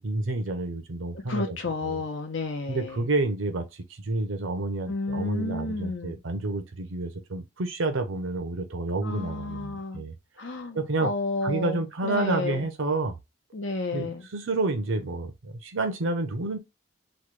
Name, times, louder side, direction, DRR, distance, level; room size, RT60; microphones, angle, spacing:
voice 1, 0.0-1.6 1.8-2.0 2.7-10.1 10.7-11.1 11.4-13.1 13.9-16.6, right 2 dB, 85° right, 0.7 m, -29 dB
voice 2, 1.1-3.0 4.9-6.2 9.0-10.0 10.4-12.7 13.5-14.3, left 2 dB, 75° left, 0.8 m, -31 dB
3.1 x 2.3 x 3.1 m
head